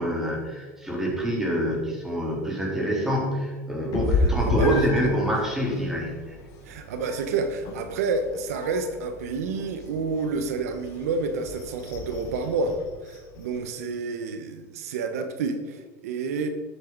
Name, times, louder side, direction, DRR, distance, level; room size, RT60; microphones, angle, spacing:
voice 1, 0.0-6.4, equal, 5° right, -3 dB, 3.7 m, -26 dB
Meow, 3.9-13.6, left 2 dB, 50° left, 2.9 m, -32 dB
voice 2, 4.6-5.1 6.6-16.5, right 4 dB, 90° right, 8 dB, 1.1 m, -29 dB
13.0 x 8.4 x 4.0 m, 1.3 s
supercardioid pair, 120°, 8 cm